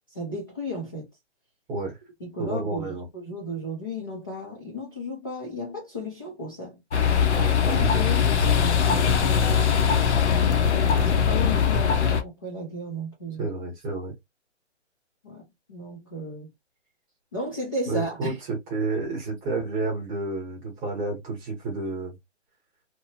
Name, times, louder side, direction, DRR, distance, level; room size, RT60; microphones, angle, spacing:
voice 1, 0.1-1.1 2.2-6.8 7.6-8.7 10.7-13.5 15.2-16.5 17.3-18.4, left 1 dB, 20° left, 0.4 m, -34 dB
voice 2, 2.4-3.0 7.3-7.9 13.4-14.1 17.9-22.1, right 3 dB, 15° right, 0.9 m, -30 dB
sound 1, 6.9-12.2, left 7 dB, 70° left, 0.8 m, -21 dB
2.8 x 2.1 x 2.7 m
hypercardioid pair, 155°, 35 cm